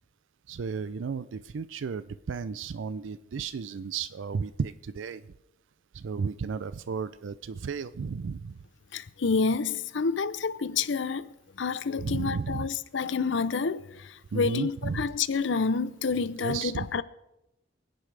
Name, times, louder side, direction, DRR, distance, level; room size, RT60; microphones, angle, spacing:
voice 1, 0.5-5.2 5.9-8.6 12.0-12.7 14.3-15.0 16.4-16.9, right 5 dB, 75° right, 0.4 m, -33 dB
voice 2, 8.9-17.0, left 5 dB, 65° left, 0.6 m, -29 dB
28.0 x 10.0 x 3.3 m
head